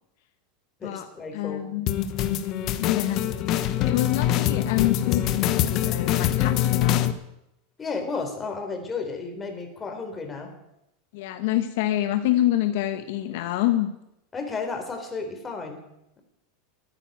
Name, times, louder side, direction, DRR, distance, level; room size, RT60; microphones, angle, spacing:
voice 1, 0.8-1.6 7.8-10.5 14.3-15.8, left 4 dB, 20° left, 5 dB, 3.8 m, -33 dB
voice 2, 1.3-1.9 2.7-7.0 11.1-13.9, left 14 dB, 70° left, 8 dB, 1.2 m, -27 dB
sound 1, 1.9-7.1, left 11 dB, 50° left, 1.1 m, -24 dB
14.0 x 9.8 x 9.1 m, 0.85 s
supercardioid pair, 120°, 0 cm